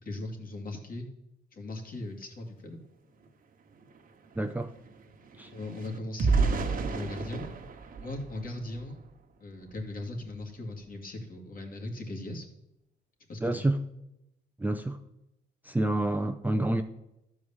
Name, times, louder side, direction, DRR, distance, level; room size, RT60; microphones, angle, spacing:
voice 1, 0.0-1.1 1.5-2.8 5.5-7.5 8.0-9.0 9.4-12.5 13.3-13.6, left 2 dB, 45° left, 2 dB, 2.3 m, -38 dB
sound 1, 3.2-3.3 3.6-9.1 9.6-9.8 10.2-10.4, right 4 dB, 45° right, 1.2 m, -32 dB
voice 2, 4.4-4.7 5.4-5.5 13.4-13.8 14.6-15.0 15.6-16.8, right 1 dB, 10° right, 5 dB, 0.5 m, -28 dB
12.5 x 4.8 x 7.2 m, 0.89 s
cardioid pair, 90°, 20 cm